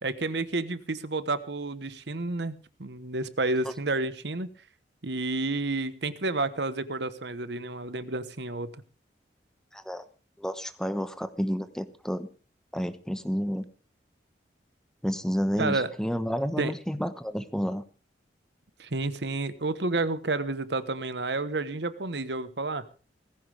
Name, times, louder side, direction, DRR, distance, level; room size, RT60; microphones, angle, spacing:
voice 1, 0.0-2.5 2.8-4.5 5.0-8.7 15.6-15.9 16.6-16.7 18.8-22.9, right 2 dB, 65° right, 14 dB, 1.2 m, -30 dB
voice 2, 9.7-10.0 10.4-12.3 12.7-13.6 15.0-17.8, equal, 5° left, 11 dB, 0.9 m, -30 dB
18.5 x 16.0 x 3.4 m, 0.36 s
head